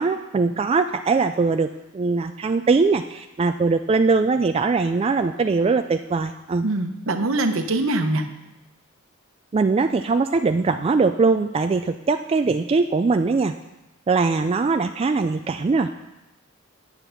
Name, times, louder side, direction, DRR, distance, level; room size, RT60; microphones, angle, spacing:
voice 1, 0.0-6.7 9.5-13.5 14.1-15.9, right 4 dB, 30° right, 7 dB, 0.3 m, -21 dB
voice 2, 6.6-8.2, right 2 dB, 70° right, 7 dB, 0.9 m, -23 dB
9.2 x 8.1 x 5.7 m, 0.98 s
head